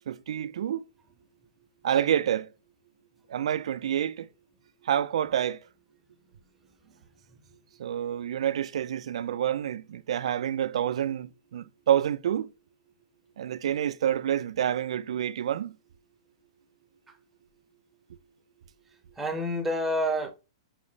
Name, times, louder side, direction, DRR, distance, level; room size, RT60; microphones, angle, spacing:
voice 1, 0.1-0.8 1.8-2.5 3.3-4.3 4.8-5.6 7.8-12.5 13.4-15.7, right 10 dB, 70° right, 0.3 m, -28 dB
voice 2, 6.8-7.4 17.1-17.2 18.9-20.3, equal, 5° right, 0.6 m, -30 dB
5.9 x 2.0 x 3.8 m
hypercardioid pair, 160°, 3 cm